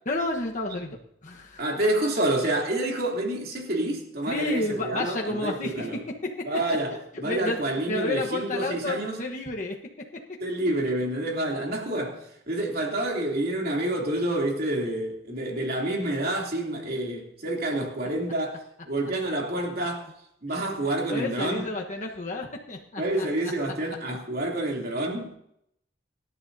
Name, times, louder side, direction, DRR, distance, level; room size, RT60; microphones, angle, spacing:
voice 1, 0.1-1.6 4.3-5.9 6.2-6.3 7.2-9.8 20.5-20.6 21.1-23.5, left 2 dB, 45° left, 1.2 m, -31 dB
voice 2, 1.6-6.0 6.4-9.2 10.4-20.1 20.4-21.6 23.0-25.4, right 1 dB, 55° right, 3.0 m, -28 dB
25.0 x 11.0 x 2.7 m
head